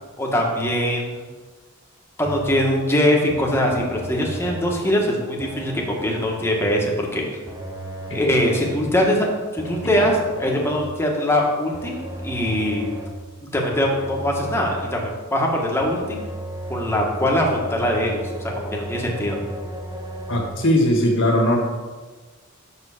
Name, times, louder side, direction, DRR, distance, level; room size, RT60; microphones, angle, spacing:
voice 1, 0.2-1.2 2.2-7.2 8.1-9.3 9.5-12.0 12.2-12.9 13.5-16.2 16.7-19.4, left 1 dB, 10° left, -1 dB, 1.3 m, -22 dB
sound 1, 2.2-2.8 3.3-4.8 5.4-6.9 7.5-8.9 9.6-11.0 11.7-13.3 13.7-15.1 15.8-20.5, right 1 dB, 15° right, 0.8 m, -35 dB
voice 2, 20.3-21.6, left 1 dB, 60° left, 0 dB, 1.8 m, -19 dB
6.2 x 5.5 x 6.5 m, 1.3 s
head